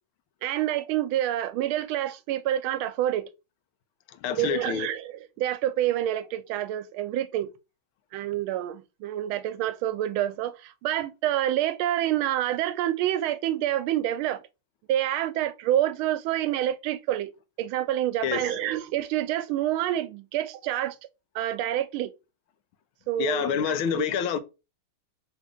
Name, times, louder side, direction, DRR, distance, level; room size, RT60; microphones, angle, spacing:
voice 1, 0.4-3.3 4.3-7.5 8.1-14.4 14.9-17.3 17.6-21.0 21.3-22.1 23.1-23.7, right 12 dB, 90° right, 1.4 m, -27 dB
voice 2, 4.2-4.9 18.2-18.4 23.2-24.4, left 8 dB, 85° left, 1.5 m, -27 dB
3.9 x 2.6 x 4.7 m
omnidirectional pair, 2.2 m